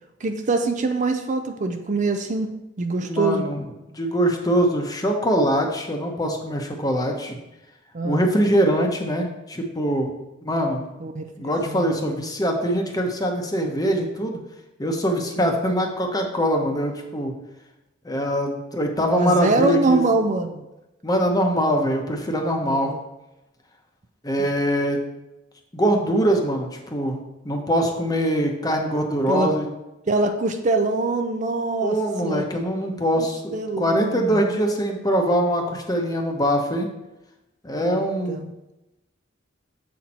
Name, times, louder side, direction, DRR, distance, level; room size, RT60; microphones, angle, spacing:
voice 1, 0.2-2.5 2.8-3.4 7.9-8.2 11.0-11.2 11.7-12.0 15.4-15.5 19.1-20.6 22.6-23.0 24.4-24.5 29.3-29.5 30.1-32.0 32.2-32.4 33.2-33.3 33.5-34.4 37.8-38.5, right 3 dB, 40° right, 6 dB, 0.5 m, -24 dB
voice 2, 3.0-3.6 3.9-7.4 8.0-10.1 10.4-10.9 11.4-14.4 14.8-17.3 18.0-20.1 21.0-22.9 24.2-25.0 25.7-27.2 27.4-29.7 31.8-36.9 37.6-38.4, equal, 20° left, 3 dB, 0.9 m, -23 dB
7.5 x 4.3 x 4.3 m, 0.95 s
head